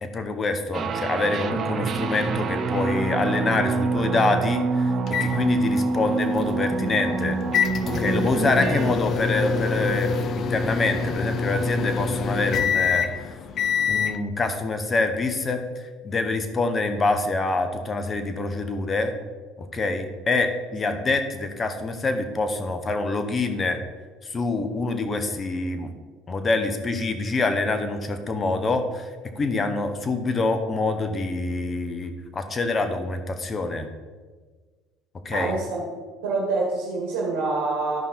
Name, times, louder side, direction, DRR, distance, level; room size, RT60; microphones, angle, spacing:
voice 1, 0.0-4.9 5.2-7.4 7.8-13.2 13.8-19.1 19.6-23.8 24.2-25.9 26.3-29.1 29.3-33.9 35.2-35.5, left 3 dB, 30° left, 8 dB, 1.2 m, -26 dB
sound 1, 0.7-9.0, right 4 dB, 45° right, 0.8 m, -26 dB
sound 2, 5.1-14.2, left 5 dB, 50° left, 0.7 m, -26 dB
voice 2, 35.3-35.8 36.2-38.0, right 3 dB, 75° right, -3 dB, 1.9 m, -26 dB
12.0 x 5.4 x 4.4 m, 1.4 s
hypercardioid pair, 75°, 0 cm